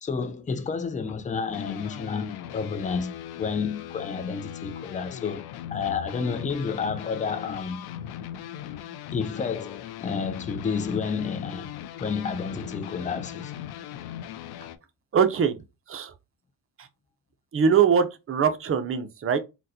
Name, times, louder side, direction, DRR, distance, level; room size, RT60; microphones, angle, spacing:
voice 1, 0.0-7.8 9.1-11.7 12.0-13.5, left 5 dB, 20° left, 0.5 m, -30 dB
sound 1, 1.1-14.8, left 11 dB, 70° left, 0.5 m, -39 dB
voice 2, 15.1-15.5 15.9-16.1 17.5-19.4, right 7 dB, 35° right, 0.6 m, -22 dB
3.9 x 2.2 x 2.7 m
supercardioid pair, 65°, 39 cm